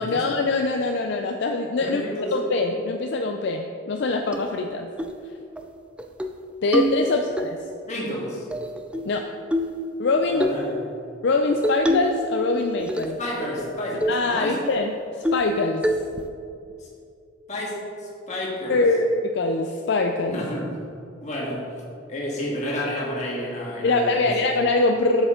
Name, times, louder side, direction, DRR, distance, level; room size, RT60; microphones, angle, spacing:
voice 1, 0.0-2.0 2.3-4.9 6.6-7.6 9.1-9.2 10.0-10.5 11.2-13.2 14.1-15.8 18.7-20.4 23.8-25.3, left 3 dB, 60° left, 4 dB, 0.4 m, -23 dB
voice 2, 1.8-2.4 7.9-8.5 10.3-10.8 13.2-14.6 16.8-16.9 17.5-18.8 20.3-20.8 21.2-21.7 22.1-24.5, left 1 dB, 35° left, -4 dB, 1.8 m, -30 dB
sound 1, 4.3-4.4 5.0-5.2 5.6-5.7 6.0-6.4 6.7-7.5 8.5-9.1 9.5-9.8 10.4-10.6 11.6-12.2 12.5-13.2 13.6-13.7 14.0-14.2 14.6-14.7 15.2-15.6 15.8-16.3, equal, 5° right, 0.3 m, -25 dB
7.8 x 7.2 x 3.8 m, 2.4 s
head